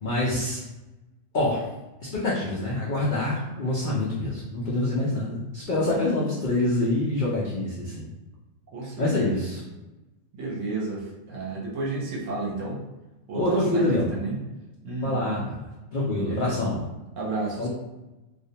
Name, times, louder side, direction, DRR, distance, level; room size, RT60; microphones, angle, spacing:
voice 1, 0.0-0.6 1.3-1.6 2.0-8.1 9.0-9.6 13.3-14.1 15.0-16.8 17.6-17.7, left 2 dB, 80° left, -6 dB, 0.4 m, -26 dB
voice 2, 8.7-9.4 10.3-12.8 13.3-14.4 14.8-15.4 16.3-16.6 17.2-17.7, right 3 dB, 65° right, -3 dB, 0.9 m, -32 dB
2.4 x 2.0 x 2.7 m, 1.0 s
omnidirectional pair, 1.5 m